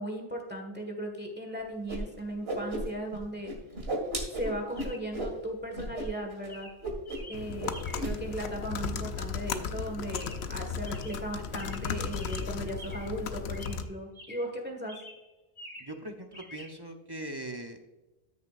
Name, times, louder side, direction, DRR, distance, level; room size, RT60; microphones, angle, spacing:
voice 1, 0.0-3.5 4.4-6.7 7.3-7.8 8.0-15.0, right 1 dB, 10° right, 2 dB, 1.6 m, -37 dB
Whoosh swoosh swish, 1.9-2.0 2.3-3.2 3.4-5.3 5.7-6.1 6.3-6.5 6.8-7.3 7.6-8.1, right 1 dB, 75° right, 2.2 m, -34 dB
Chirp tweet, 2.0-2.1 4.8-5.2 5.9-6.1 6.5-8.2 10.1-10.6 10.8-13.2 13.5-14.6 14.9-16.0 16.3-16.7, left 1 dB, 30° left, 1.3 m, -49 dB
sound 1, 7.3-13.9, left 6 dB, 85° left, 1.0 m, -35 dB
voice 2, 15.8-17.8, right 1 dB, 25° right, 4 dB, 0.8 m, -40 dB
13.5 x 6.7 x 2.5 m, 1.1 s
omnidirectional pair, 1.1 m